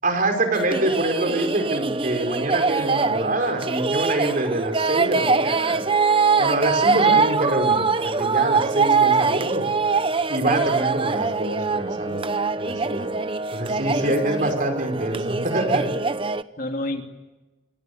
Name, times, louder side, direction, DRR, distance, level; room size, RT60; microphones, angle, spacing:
voice 1, 0.0-5.8 6.4-9.6 10.3-12.3 12.6-13.1 13.5-16.0, right 1 dB, 40° right, 6 dB, 5.1 m, -25 dB
sound 1, 0.5-16.4, right 4 dB, 25° right, 0.8 m, -23 dB
voice 2, 6.9-7.3 14.0-14.5 16.6-17.0, left 2 dB, 40° left, 4 dB, 2.9 m, -30 dB
28.0 x 24.0 x 8.1 m, 1.1 s
head